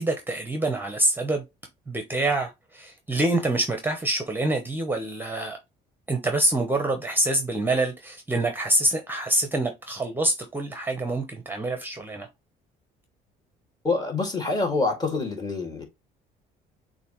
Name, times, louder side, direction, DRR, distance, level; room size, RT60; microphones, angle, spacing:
voice 1, 0.0-1.4 1.9-5.6 6.1-12.3, right 2 dB, 10° right, 0.8 m, -26 dB
voice 2, 13.8-15.8, left 3 dB, 25° left, 2.0 m, -26 dB
6.6 x 2.7 x 3.0 m
cardioid pair, 110°, 17 cm